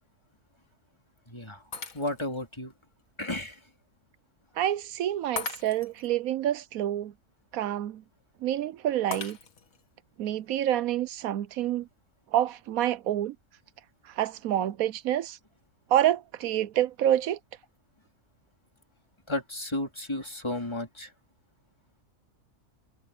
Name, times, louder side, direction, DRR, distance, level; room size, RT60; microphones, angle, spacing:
voice 1, 1.3-1.6 1.9-2.7 3.2-3.6 19.3-21.1, left 1 dB, 20° left, 3.3 m, -33 dB
Shatter, 1.7-2.4 3.0-3.1 5.4-6.1 9.1-9.8, left 5 dB, 65° left, 2.1 m, -38 dB
voice 2, 4.6-7.1 7.5-8.0 8.4-9.4 10.2-11.9 12.3-13.4 14.1-15.4 15.9-17.4, right 12 dB, 75° right, 1.0 m, -27 dB
omnidirectional pair, 1.5 m